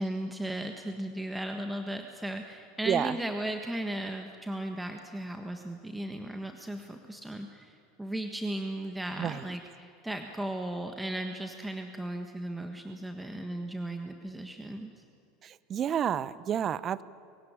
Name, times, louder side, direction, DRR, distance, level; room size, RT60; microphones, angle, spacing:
voice 1, 0.0-15.0, right 1 dB, 5° right, 5 dB, 1.5 m, -36 dB
voice 2, 15.4-17.0, right 9 dB, 40° right, 18 dB, 0.7 m, -30 dB
22.5 x 16.5 x 10.0 m, 2.5 s
hypercardioid pair, 90°, 0 cm